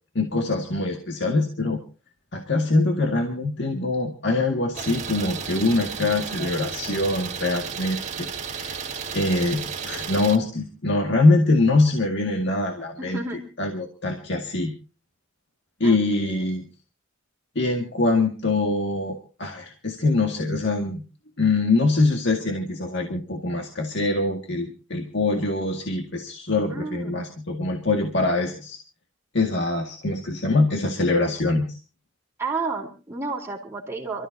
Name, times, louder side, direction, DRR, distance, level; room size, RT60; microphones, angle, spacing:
voice 1, 0.2-1.8 2.3-8.8 9.1-13.2 13.6-14.7 15.8-16.6 17.6-21.0 21.4-28.8 29.3-31.8, left 2 dB, 60° left, 2 dB, 1.9 m, -23 dB
Idling, 4.7-10.4, right 6 dB, 35° right, 1.6 m, -33 dB
voice 2, 13.0-13.4 15.8-16.6 26.7-27.2 32.4-34.3, right 3 dB, 15° right, 0 dB, 3.7 m, -32 dB
28.0 x 14.0 x 2.7 m, 0.34 s
head